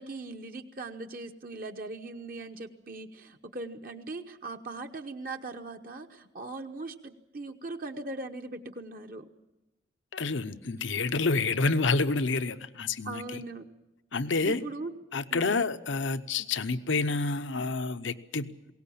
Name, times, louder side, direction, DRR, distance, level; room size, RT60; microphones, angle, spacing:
voice 1, 0.0-9.3 13.0-13.7 14.4-14.9 15.3-15.7, right 2 dB, 45° right, 6 dB, 1.0 m, -40 dB
voice 2, 10.1-13.4 14.1-14.6 15.1-18.5, left 3 dB, 85° left, 12 dB, 0.8 m, -28 dB
21.5 x 18.0 x 8.6 m, 0.98 s
head